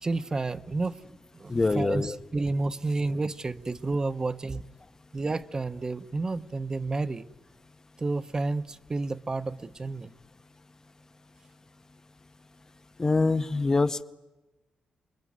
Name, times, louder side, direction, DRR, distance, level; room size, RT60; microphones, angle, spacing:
voice 1, 0.0-1.0 1.3-4.6 5.1-7.3 8.0-10.1, right 3 dB, 25° right, 13 dB, 0.9 m, -30 dB
voice 2, 1.5-2.2 13.0-14.0, left 3 dB, 20° left, 12 dB, 0.9 m, -24 dB
29.0 x 21.5 x 9.5 m, 1.1 s
wide cardioid pair, 130°, 3 cm